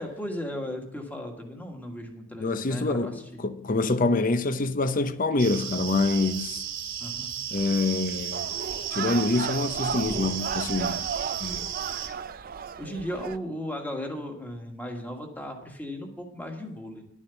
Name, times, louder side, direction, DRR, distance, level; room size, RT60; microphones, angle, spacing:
voice 1, 0.0-3.4 7.0-7.3 12.8-17.0, equal, 10° left, 1.6 m, -36 dB
voice 2, 2.4-6.6 7.5-8.5 8.9-11.1 11.4-11.7, left 3 dB, 40° left, 0.7 m, -26 dB
sound 1, 5.4-12.1, right 9 dB, 85° right, 3.0 m, -34 dB
sound 2, 8.3-13.4, right 6 dB, 45° right, 0.4 m, -34 dB
11.0 x 7.3 x 6.9 m
head